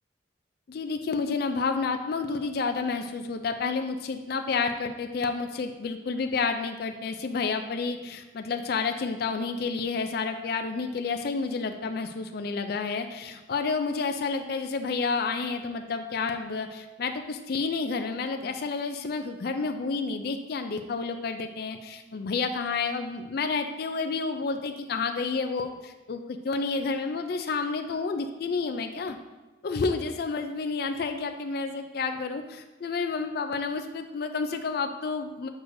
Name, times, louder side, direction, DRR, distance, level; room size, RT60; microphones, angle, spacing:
voice 1, 0.7-29.2 29.6-35.5, left 4 dB, 50° left, 6 dB, 0.4 m, -30 dB
6.4 x 6.1 x 2.6 m, 1.1 s
head